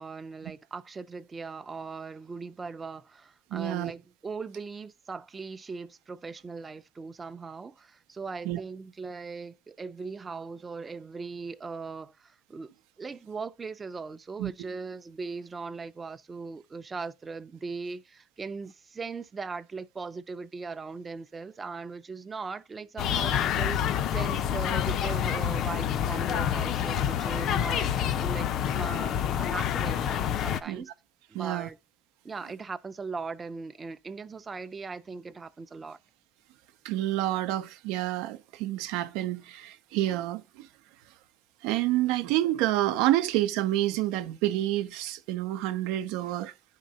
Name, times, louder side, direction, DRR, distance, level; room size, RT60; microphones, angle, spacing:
voice 1, 0.0-12.7 13.0-23.8 24.1-30.9 31.3-31.8 32.2-36.0, right 4 dB, 25° right, 0.5 m, -39 dB
voice 2, 3.5-3.9 8.4-8.6 14.4-14.5 30.7-30.8 31.3-31.7 36.8-40.7 41.6-46.5, right 14 dB, 85° right, 0.6 m, -28 dB
sound 1, 23.0-30.6, left 9 dB, 60° left, 0.5 m, -28 dB
10.0 x 3.8 x 4.1 m
cardioid pair, 115°, 0 cm